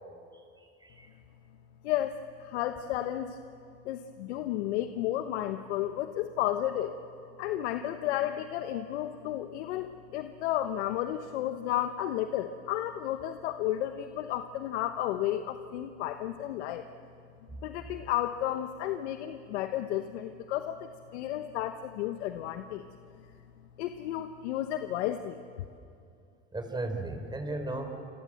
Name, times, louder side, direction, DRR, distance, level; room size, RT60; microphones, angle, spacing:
voice 1, 0.6-1.1 17.5-17.6 26.5-27.9, right 2 dB, 15° right, 6 dB, 4.7 m, -36 dB
voice 2, 1.8-3.4 3.8-7.0 7.4-16.8 17.6-22.9 23.8-25.7, left 12 dB, 85° left, 8 dB, 1.1 m, -32 dB
28.0 x 26.5 x 7.8 m, 2.5 s
supercardioid pair, 100°, 33 cm